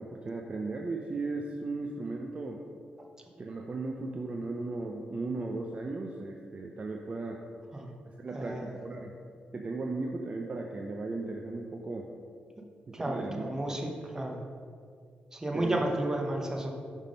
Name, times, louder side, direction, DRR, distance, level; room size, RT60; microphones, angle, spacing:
voice 1, 0.0-2.6 3.4-7.4 8.0-9.2 9.5-12.1 12.9-13.8 15.5-15.8, right 3 dB, 35° right, 1 dB, 0.5 m, -36 dB
voice 2, 8.3-8.7 12.9-14.4 15.3-16.7, right 1 dB, 15° right, 2 dB, 0.9 m, -32 dB
5.7 x 3.6 x 5.1 m, 2.2 s
cardioid pair, 75°, 3 cm